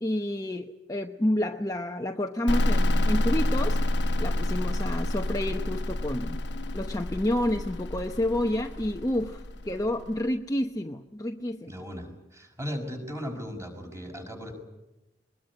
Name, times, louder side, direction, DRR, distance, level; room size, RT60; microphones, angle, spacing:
voice 1, 0.0-3.8 4.2-6.4 6.7-11.7, left 1 dB, 20° left, 4 dB, 0.9 m, -29 dB
sound 1, 2.5-10.0, left 1 dB, 65° left, 1.1 m, -28 dB
sound 2, 3.1-10.5, left 2 dB, 85° left, 0.9 m, -42 dB
voice 2, 11.7-14.5, equal, 15° right, 3 dB, 5.7 m, -37 dB
22.5 x 21.0 x 9.8 m, 0.97 s
head